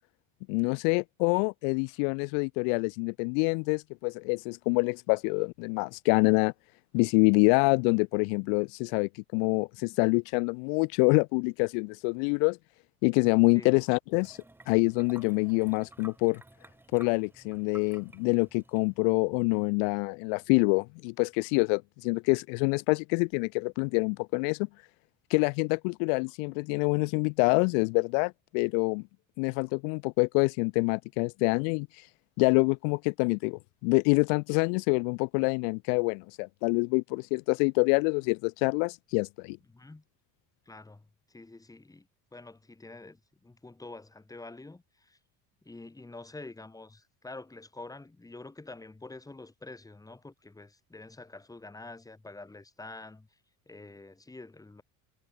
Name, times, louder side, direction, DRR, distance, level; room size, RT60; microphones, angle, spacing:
voice 1, 0.5-6.5 6.9-12.6 13.0-14.4 14.7-16.4 16.9-24.6 25.3-29.0 29.4-31.9 32.4-39.6, left 40 dB or more, 85° left, 0.6 m, -26 dB
sound 1, 14.1-19.1, right 2 dB, 5° right, 1.3 m, -54 dB
voice 2, 39.7-40.0 40.7-42.1 42.3-45.2 45.7-53.3 53.7-54.8, left 2 dB, 10° left, 4.3 m, -47 dB
cardioid pair, 135°, 36 cm